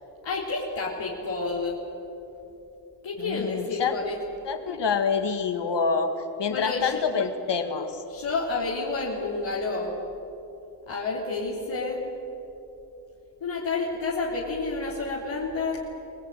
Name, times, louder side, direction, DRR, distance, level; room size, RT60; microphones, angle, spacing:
voice 1, 0.2-1.8 3.0-4.2 4.7-4.8 6.5-7.0 8.1-9.9 10.9-12.0 13.4-15.8, left 3 dB, 85° left, -5 dB, 3.7 m, -29 dB
voice 2, 3.2-3.9 4.4-6.1 6.4-8.0, left 5 dB, 70° left, 7 dB, 2.1 m, -27 dB
25.0 x 19.0 x 9.3 m, 3.0 s
cardioid pair, 55°, 44 cm